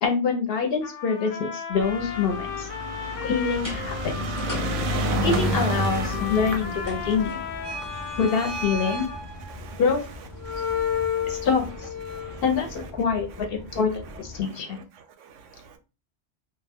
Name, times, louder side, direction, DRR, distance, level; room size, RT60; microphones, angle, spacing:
voice 1, 0.0-2.7 3.2-4.3 5.2-7.4 8.2-9.1 9.8-10.0 11.3-11.9 12.4-14.8, left 5 dB, 60° left, 0.7 m, -25 dB
Trumpet, 0.8-9.2, left 7 dB, 90° left, 1.0 m, -36 dB
sound 1, 1.7-10.2 11.1-11.2 11.4-11.5 11.7-11.8, right 1 dB, 60° right, 0.6 m, -30 dB
sound 2, 3.5-14.4, left 4 dB, 20° left, 0.6 m, -34 dB
voice 2, 9.5-9.8 10.5-11.5 12.1-12.4, right 7 dB, 90° right, 0.9 m, -47 dB
2.3 x 2.2 x 3.4 m
omnidirectional pair, 1.2 m